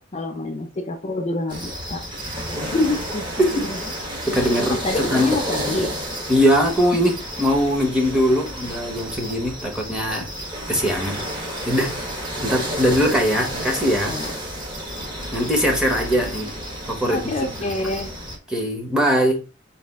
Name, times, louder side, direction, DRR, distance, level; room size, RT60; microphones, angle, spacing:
voice 1, 0.0-2.1 2.7-3.8 4.7-5.9 14.1-14.3 17.1-18.1, left 2 dB, 35° left, 0.5 m, -27 dB
sound 1, 1.5-18.4, equal, 25° right, 1.1 m, -31 dB
voice 2, 3.4-3.7 4.3-4.8 5.1-5.3 6.3-10.3 10.7-11.2 11.7-12.0 12.4-14.2 15.3-16.5 16.8-17.2 18.5-19.4, equal, 5° right, 0.9 m, -21 dB
4.2 x 2.4 x 3.5 m
head